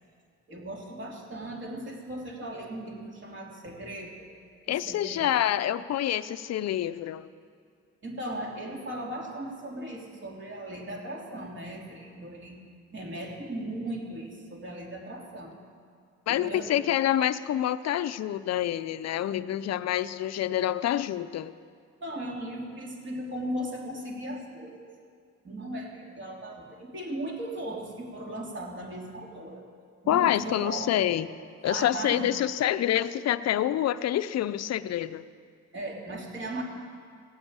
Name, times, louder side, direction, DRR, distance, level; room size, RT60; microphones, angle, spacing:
voice 1, 0.5-4.3 4.7-5.3 8.0-12.6 12.9-15.5 16.3-16.7 22.0-24.9 25.4-29.6 30.0-31.0 31.6-32.3 35.7-36.6, right 1 dB, 40° right, 3.1 m, -37 dB
voice 2, 4.7-7.3 16.3-21.5 30.1-31.3 31.6-35.3, left 12 dB, 60° left, 0.6 m, -27 dB
16.5 x 8.0 x 8.7 m
cardioid pair, 90°, 30 cm